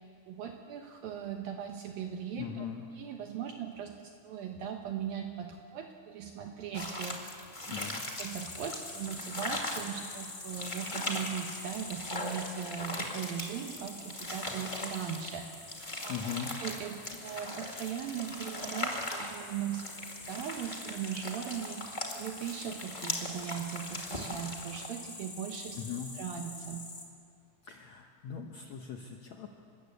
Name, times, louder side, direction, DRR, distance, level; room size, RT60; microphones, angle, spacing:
voice 1, 0.3-2.6 3.0-7.2 7.7-7.8 8.2-16.2 16.6-25.8 26.2-26.9, right 8 dB, 70° right, 3 dB, 2.6 m, -39 dB
voice 2, 2.4-2.8 7.7-8.0 16.1-16.5 25.8-26.1 27.6-29.5, left 8 dB, 80° left, 3 dB, 1.6 m, -39 dB
sound 1, 6.7-24.9, left 1 dB, 50° left, 0.5 m, -39 dB
sound 2, 8.3-27.1, left 3 dB, 25° left, 1.7 m, -47 dB
30.0 x 13.5 x 8.2 m, 2.3 s
omnidirectional pair, 4.7 m